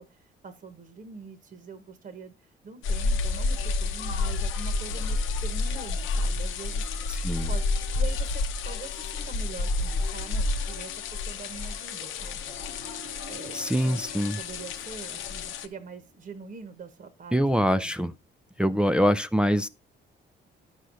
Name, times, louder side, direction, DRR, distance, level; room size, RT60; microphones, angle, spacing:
voice 1, 0.0-7.2 7.5-7.6 7.9-12.4 13.3-14.1 14.4-17.9, right 5 dB, 45° right, 1.1 m, -44 dB
sound 1, 2.8-15.7, left 3 dB, 90° left, 0.9 m, -30 dB
voice 2, 7.1-7.5 13.5-14.4 17.3-18.1 18.6-19.7, equal, 5° right, 0.4 m, -24 dB
Harp, 10.7-16.1, right 2 dB, 85° right, 1.9 m, -50 dB
11.5 x 6.3 x 2.6 m
cardioid pair, 90°, 20 cm